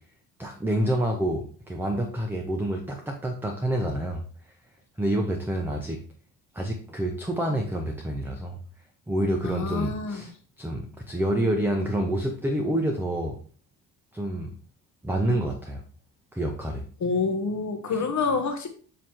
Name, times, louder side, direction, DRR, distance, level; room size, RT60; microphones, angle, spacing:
voice 1, 0.4-4.2 5.0-6.0 6.5-8.5 9.1-10.3 10.6-13.4 14.1-14.5 15.0-15.8 16.3-16.8 17.9-18.0, right 1 dB, 5° right, 2 dB, 0.7 m, -28 dB
voice 2, 9.4-10.2 17.0-18.7, left 4 dB, 45° left, 6 dB, 1.0 m, -27 dB
7.6 x 3.0 x 4.3 m, 0.43 s
cardioid pair, 105°, 41 cm